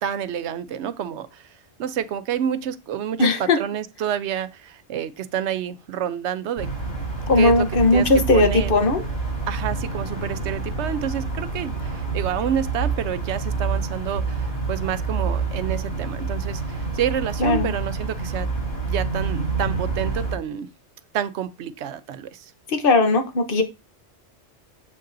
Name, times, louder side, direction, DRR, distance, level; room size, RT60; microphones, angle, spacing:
voice 1, 0.0-1.5 1.8-7.0 7.4-7.7 7.9-8.7 9.5-18.5 18.8-20.7 21.1-22.5, right 9 dB, 75° right, 0.9 m, -29 dB
voice 2, 3.2-3.6 7.3-9.0 17.4-17.7 22.7-23.6, left 2 dB, 50° left, 1.2 m, -18 dB
sound 1, 6.6-20.3, right 4 dB, 70° left, 5.4 m, -27 dB
7.5 x 6.5 x 2.6 m
omnidirectional pair, 1.2 m